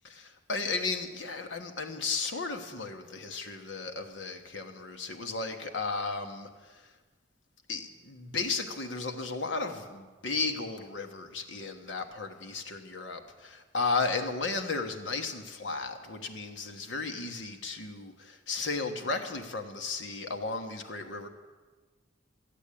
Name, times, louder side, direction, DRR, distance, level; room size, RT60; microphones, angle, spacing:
voice 1, 0.0-6.8 7.7-21.3, left 4 dB, 75° left, 6 dB, 1.3 m, -34 dB
14.0 x 8.3 x 8.5 m, 1.3 s
head